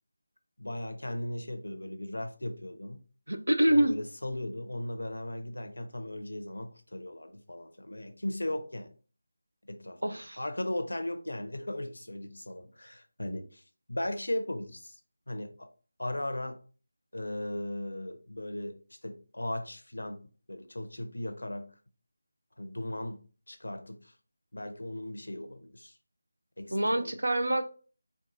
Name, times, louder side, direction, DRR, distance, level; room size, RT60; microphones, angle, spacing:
voice 1, 0.6-3.0 3.7-8.9 9.6-13.6 13.9-15.0 15.3-15.7 16.0-16.6 17.1-21.7 22.6-24.1 24.5-26.0 26.6-27.2, left 1 dB, 80° left, 0.6 m, -37 dB
voice 2, 3.3-3.9 10.0-10.4 26.7-27.6, right 1 dB, 80° right, 0.6 m, -26 dB
4.5 x 2.3 x 2.6 m
figure-of-eight pair, 165°, 0 cm